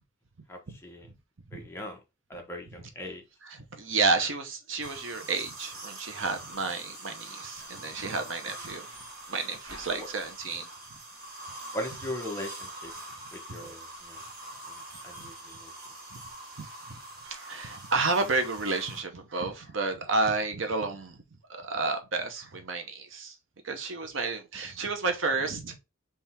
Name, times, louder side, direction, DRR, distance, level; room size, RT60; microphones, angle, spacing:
voice 1, 0.5-1.1 1.5-2.0 2.3-3.2 9.9-10.1 11.7-12.9 13.3-14.2 14.7-15.7, left 1 dB, 10° left, 1.1 m, -39 dB
voice 2, 3.4-8.9 9.3-10.7 14.2-14.3 15.2-15.3 16.1-16.2 16.6-23.4 23.6-25.8, right 3 dB, 65° right, 0.9 m, -31 dB
sound 1, 4.8-19.0, right 1 dB, 50° right, 1.9 m, -44 dB
3.6 x 3.5 x 4.2 m
head